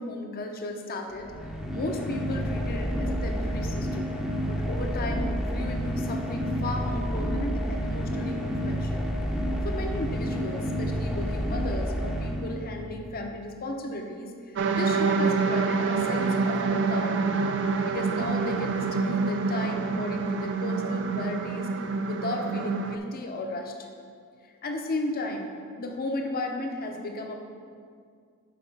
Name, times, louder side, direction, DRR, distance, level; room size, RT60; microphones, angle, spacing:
voice 1, 0.0-4.1 4.5-9.0 9.6-17.3 17.8-21.7 22.1-23.9 24.6-25.5 25.8-27.3, left 1 dB, 40° left, 3 dB, 0.6 m, -34 dB
sound 1, 1.1-13.0, equal, 5° right, 0.6 m, -30 dB
sound 2, 14.6-23.0, right 4 dB, 55° right, 0.4 m, -27 dB
5.9 x 4.8 x 5.3 m, 2.1 s
head